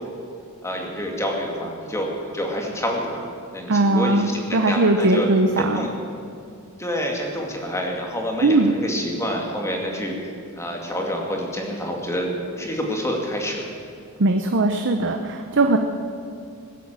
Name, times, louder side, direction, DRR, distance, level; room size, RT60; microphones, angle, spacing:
voice 1, 0.6-3.3 3.5-5.3 5.6-5.9 6.8-10.1 10.6-12.3 12.6-13.7, equal, 15° left, 0 dB, 2.2 m, -27 dB
voice 2, 3.7-5.9 8.4-8.7 14.2-15.8, right 2 dB, 55° right, 5 dB, 0.8 m, -19 dB
20.5 x 8.3 x 7.4 m, 2.4 s
head